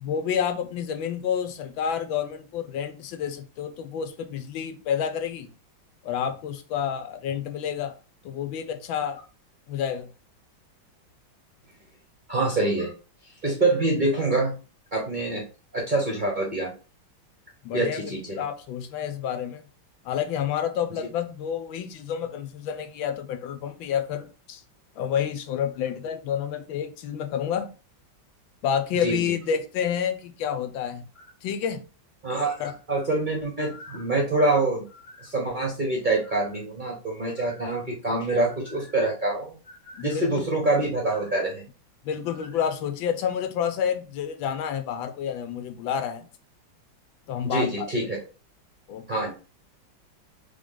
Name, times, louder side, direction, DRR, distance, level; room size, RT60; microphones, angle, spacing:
voice 1, 0.0-5.5 6.0-7.9 8.2-9.2 9.7-10.1 17.6-19.6 20.0-24.6 25.0-27.7 28.6-31.0 31.4-31.8 32.6-32.7 40.0-40.5 42.0-46.3 47.3-47.9 48.9-49.1, left 8 dB, 85° left, 1.4 m, -29 dB
voice 2, 12.3-12.9 13.4-14.5 14.9-15.4 15.7-16.7 17.7-18.4 29.0-29.2 32.2-41.6 47.4-48.2 49.1-49.3, right 2 dB, 40° right, 0.7 m, -26 dB
3.6 x 3.5 x 3.7 m
omnidirectional pair, 2.1 m